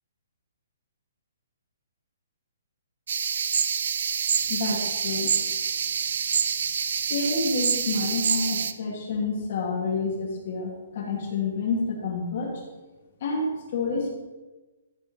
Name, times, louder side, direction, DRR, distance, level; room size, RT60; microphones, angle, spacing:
sound 1, 3.1-8.7, right 7 dB, 50° right, 0.5 m, -26 dB
voice 1, 4.5-5.3 7.0-12.5 13.2-14.1, left 3 dB, 35° left, -1 dB, 2.5 m, -28 dB
13.0 x 5.8 x 5.6 m, 1.2 s
hypercardioid pair, 180°, 0 cm